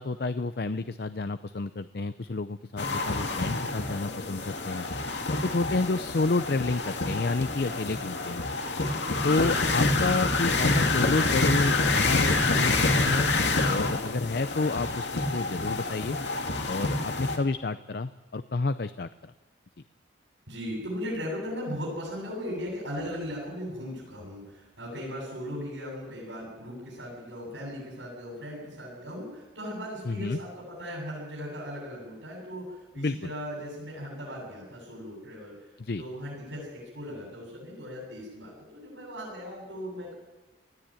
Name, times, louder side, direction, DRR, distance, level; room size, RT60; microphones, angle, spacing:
voice 1, 0.0-4.9 5.4-8.5 9.2-13.3 13.7-16.2 16.7-19.1 30.1-30.4 33.0-33.3 35.8-36.0, left 3 dB, 55° left, 12 dB, 0.6 m, -30 dB
sound 1, 2.8-17.4, left 3 dB, 75° left, 2.4 m, -27 dB
voice 2, 20.5-35.5 36.0-40.1, equal, 90° right, -4 dB, 8.0 m, -38 dB
20.0 x 14.0 x 9.0 m, 1.1 s
head